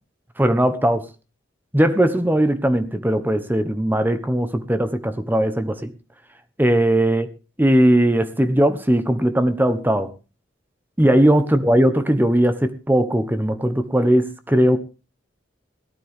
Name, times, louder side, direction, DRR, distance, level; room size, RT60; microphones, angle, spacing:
voice 1, 0.4-1.0 1.7-5.9 6.6-7.3 7.6-10.1 11.0-14.8, right 1 dB, 10° right, 10 dB, 1.0 m, -19 dB
18.0 x 12.0 x 3.6 m, 0.32 s
head